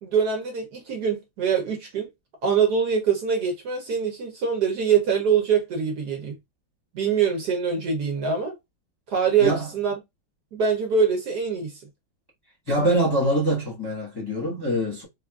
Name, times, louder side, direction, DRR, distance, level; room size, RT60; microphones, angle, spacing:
voice 1, 0.0-2.1 2.4-6.3 6.9-8.5 9.1-9.9 10.5-11.8, right 6 dB, 65° right, 1.1 m, -24 dB
voice 2, 12.7-15.0, equal, 15° left, 0.8 m, -24 dB
3.7 x 2.4 x 2.3 m
omnidirectional pair, 2.2 m